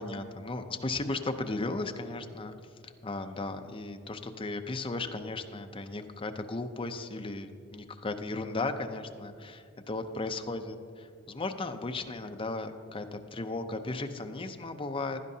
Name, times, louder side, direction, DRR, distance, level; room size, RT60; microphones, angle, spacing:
voice 1, 0.0-2.5 2.8-10.8 11.3-15.2, left 2 dB, 25° left, 6 dB, 0.5 m, -35 dB
16.0 x 11.0 x 2.8 m, 2.3 s
head